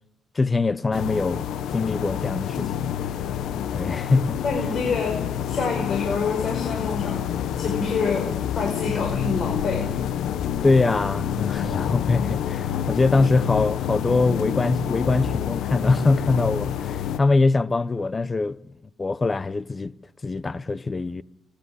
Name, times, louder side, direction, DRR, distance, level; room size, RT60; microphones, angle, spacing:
voice 1, 0.3-1.4 1.7-2.9 3.7-4.4 10.6-18.6 19.0-19.9 20.2-21.2, left 3 dB, 25° left, 0.9 m, -23 dB
sound 1, 0.9-17.2, left 9 dB, 80° left, 1.0 m, -28 dB
voice 2, 4.4-7.2 7.6-9.9, left 4 dB, 55° left, 5.1 m, -27 dB
30.0 x 10.5 x 9.8 m
cardioid pair, 90°, 0 cm